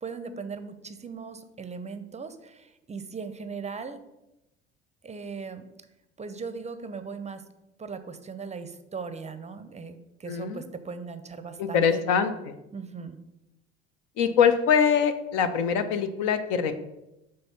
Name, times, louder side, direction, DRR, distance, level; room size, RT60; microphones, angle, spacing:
voice 1, 0.0-4.0 5.0-5.6 6.2-7.4 7.8-12.0 12.7-13.2, right 5 dB, 20° right, 10 dB, 0.6 m, -38 dB
voice 2, 10.3-10.6 11.6-12.6 14.2-16.7, left 7 dB, 65° left, 9 dB, 0.7 m, -23 dB
6.2 x 3.2 x 5.6 m, 0.92 s
hypercardioid pair, 70°, 33 cm